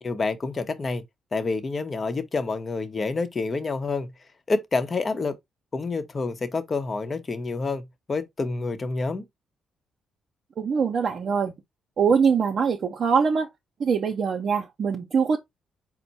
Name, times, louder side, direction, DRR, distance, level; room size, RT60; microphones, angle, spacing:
voice 1, 0.0-1.0 1.3-4.1 4.5-5.4 5.7-9.2, left 3 dB, 40° left, 0.8 m, -28 dB
voice 2, 10.6-11.5 12.0-13.5 13.8-15.4, right 6 dB, 60° right, 0.6 m, -23 dB
4.4 x 2.1 x 4.0 m
supercardioid pair, 55°, 0 cm